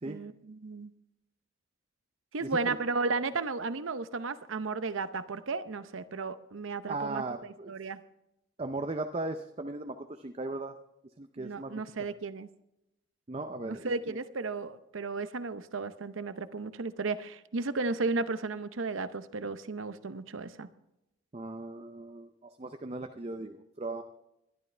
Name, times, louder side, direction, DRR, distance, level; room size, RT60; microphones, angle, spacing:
voice 1, 0.0-0.9 2.3-7.2 7.7-8.0 11.4-12.5 13.6-20.7, right 3 dB, 75° right, 12 dB, 0.7 m, -34 dB
voice 2, 2.4-2.8 6.9-7.7 8.6-10.7 11.2-11.8 13.3-14.2 21.3-24.0, right 2 dB, 30° right, 6 dB, 0.5 m, -37 dB
21.5 x 12.0 x 3.3 m, 0.87 s
head